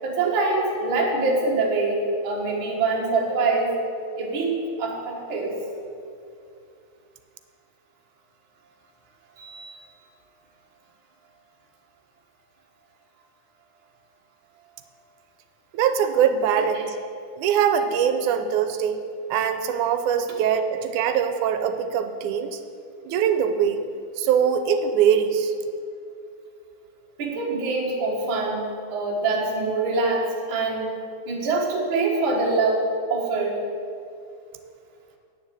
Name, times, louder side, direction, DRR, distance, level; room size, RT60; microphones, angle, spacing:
voice 1, 0.0-3.7 4.2-5.5 9.4-9.7 16.7-16.8 27.2-30.9 31.3-33.6, right 3 dB, 50° right, -2 dB, 2.0 m, -24 dB
voice 2, 15.7-17.0 17.4-19.0 19.3-22.6 23.1-23.8 24.2-25.5, right 8 dB, 90° right, 9 dB, 2.1 m, -22 dB
9.4 x 7.2 x 7.7 m, 2.4 s
omnidirectional pair, 3.5 m